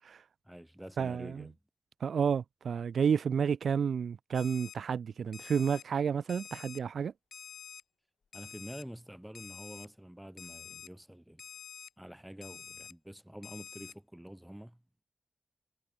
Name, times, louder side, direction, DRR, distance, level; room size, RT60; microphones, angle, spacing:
voice 1, 0.4-1.5 8.3-11.4 12.0-14.8, equal, 5° right, 5.6 m, -47 dB
voice 2, 1.0-1.4 2.0-7.1, right 7 dB, 80° right, 0.6 m, -30 dB
Alarm, 4.3-4.8 5.3-5.8 6.3-6.8 7.3-7.8 8.3-8.8 9.3-9.9 10.4-10.9 11.4-11.9 12.4-12.9 13.4-13.9, left 6 dB, 75° left, 1.7 m, -48 dB
wide cardioid pair, 110°, 0 cm